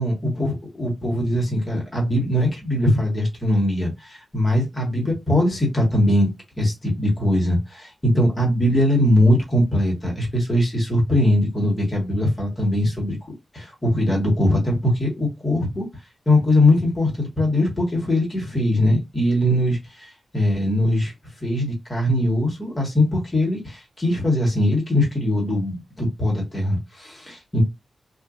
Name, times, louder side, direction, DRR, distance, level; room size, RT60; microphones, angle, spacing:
voice 1, 0.0-6.3 6.6-15.9 16.2-21.1 21.4-27.6, left 1 dB, 25° left, 1.4 m, -21 dB
2.6 x 2.5 x 2.4 m
wide cardioid pair, 90°, 0 cm